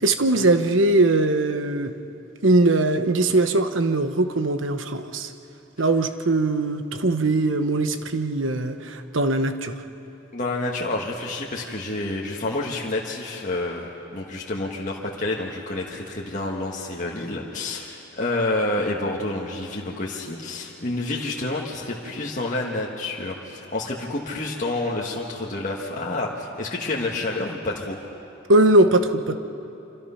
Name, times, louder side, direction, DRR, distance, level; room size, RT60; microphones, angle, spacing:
voice 1, 0.0-1.9 2.4-5.3 5.8-9.7 28.5-29.4, right 2 dB, 75° right, 9 dB, 1.1 m, -20 dB
voice 2, 10.3-28.0, left 2 dB, 40° left, -3 dB, 1.6 m, -29 dB
26.5 x 26.0 x 5.8 m, 2.9 s
head